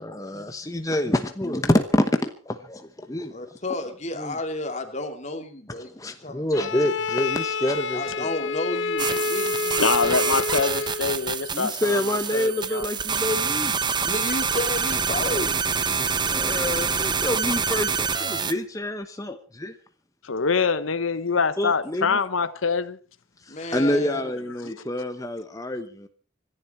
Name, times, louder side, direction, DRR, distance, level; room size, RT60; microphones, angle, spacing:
voice 1, 0.0-3.3 4.2-4.4 5.8-8.3 11.5-13.8 16.2-19.8 21.6-22.2 23.4-26.1, left 1 dB, 15° left, 1.0 m, -27 dB
voice 2, 3.3-5.9 6.2-6.7 7.9-9.9 14.0-15.6 23.5-24.2, left 2 dB, 35° left, 2.7 m, -32 dB
Bowed string instrument, 6.5-11.1, left 4 dB, 65° left, 0.9 m, -28 dB
sound 1, 9.0-18.5, right 6 dB, 20° right, 1.0 m, -26 dB
voice 3, 9.8-12.9 20.2-23.0 23.6-23.7, left 5 dB, 90° left, 1.0 m, -25 dB
26.0 x 11.0 x 4.4 m
head